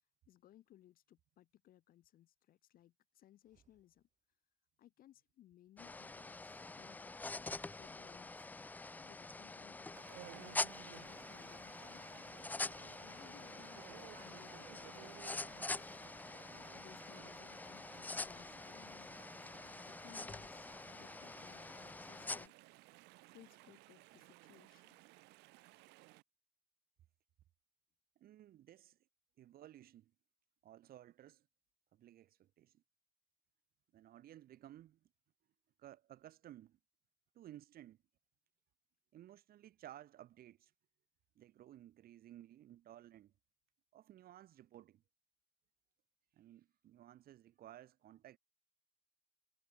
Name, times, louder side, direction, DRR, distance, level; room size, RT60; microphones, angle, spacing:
voice 1, 0.3-4.1 4.8-7.5 7.8-8.5 9.0-10.1 10.3-12.0 13.0-15.9 16.7-19.1 19.9-22.5 23.3-25.0, left 13 dB, 60° left, 0.7 m, -63 dB
sound 1, 3.4-4.3 7.0-8.4 11.2-12.4 14.9-16.2 18.5-19.5, right 8 dB, 45° right, 4.8 m, -79 dB
sound 2, 5.8-22.5, left 3 dB, 10° left, 0.3 m, -46 dB
Chatter / Stream, 9.9-26.2, right 22 dB, 85° right, 0.4 m, -59 dB
voice 2, 28.1-29.0 29.4-30.1 30.6-31.5 31.9-32.8 33.9-35.1 35.8-36.8 37.3-38.0 39.1-40.7 41.3-43.3 43.9-45.0 46.3-48.4, right 12 dB, 60° right, 1.6 m, -57 dB
cardioid pair, 110°, 17 cm